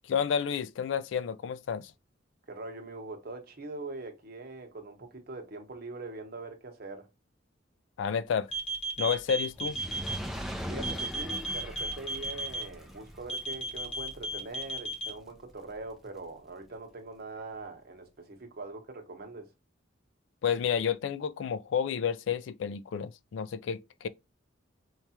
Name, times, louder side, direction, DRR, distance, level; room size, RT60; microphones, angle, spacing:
voice 1, 0.0-1.9 8.0-8.5 9.0-9.8 20.4-24.1, left 7 dB, 70° left, 0.3 m, -30 dB
voice 2, 2.5-7.1 10.7-19.5, right 3 dB, 50° right, 0.9 m, -42 dB
sound 1, 8.5-10.1 10.8-12.6 13.3-15.1, right 1 dB, 35° left, 0.8 m, -33 dB
Fire, 9.5-15.9 16.6-16.7, equal, ahead, 0.5 m, -41 dB
4.6 x 2.3 x 2.8 m
head